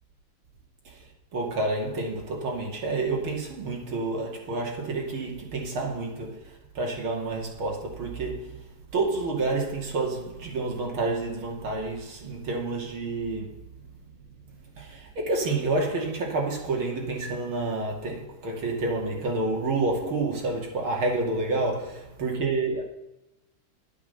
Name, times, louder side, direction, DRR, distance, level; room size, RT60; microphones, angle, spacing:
voice 1, 1.3-13.6 14.8-22.8, right 3 dB, 80° right, 3.3 m, -29 dB
11.5 x 8.6 x 7.0 m
omnidirectional pair, 2.2 m